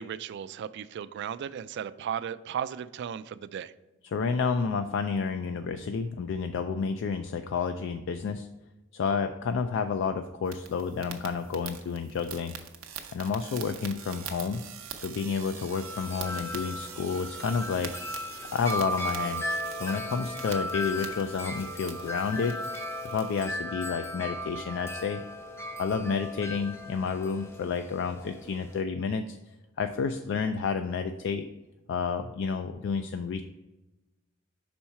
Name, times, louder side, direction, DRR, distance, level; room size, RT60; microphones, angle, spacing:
voice 1, 0.0-3.7, right 8 dB, 55° right, 15 dB, 0.3 m, -35 dB
voice 2, 4.0-8.5 8.9-12.6 13.1-14.6 15.0-17.9 18.5-19.5 19.8-22.6 23.1-25.2 25.8-29.4 29.8-31.4 31.9-33.4, left 5 dB, 65° left, 8 dB, 0.3 m, -30 dB
sound 1, 10.5-23.5, right 8 dB, 90° right, 0.7 m, -44 dB
Wind chime, 15.5-28.8, left 1 dB, 15° left, 0.5 m, -37 dB
5.5 x 4.3 x 5.6 m, 1.0 s
head